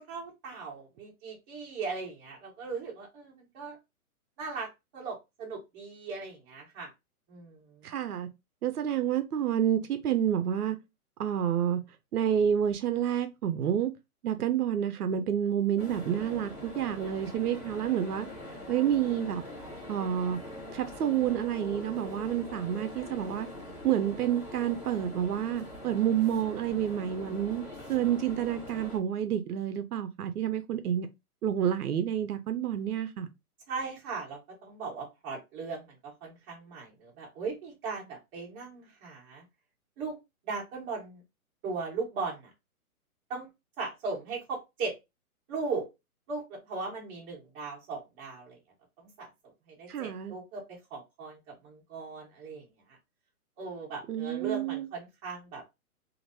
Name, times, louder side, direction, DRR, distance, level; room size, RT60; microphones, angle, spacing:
voice 1, 0.0-3.8 4.4-6.9 7.3-7.9 33.7-39.4 40.0-40.2 40.4-41.2 41.6-42.5 43.3-43.5 43.8-44.9 45.5-45.9 46.3-48.6 49.0-52.7 53.6-55.6, right 4 dB, 20° right, 1.2 m, -38 dB
voice 2, 7.8-8.3 8.6-10.8 11.2-11.8 12.1-13.9 14.2-18.3 18.7-19.4 19.9-20.4 20.7-23.5 23.8-31.1 31.4-33.3 49.9-50.4 54.1-54.9, right 9 dB, 80° right, 0.7 m, -29 dB
sound 1, 15.8-29.0, left 1 dB, 5° right, 0.4 m, -43 dB
3.0 x 2.7 x 2.6 m
hypercardioid pair, 150°, 45 cm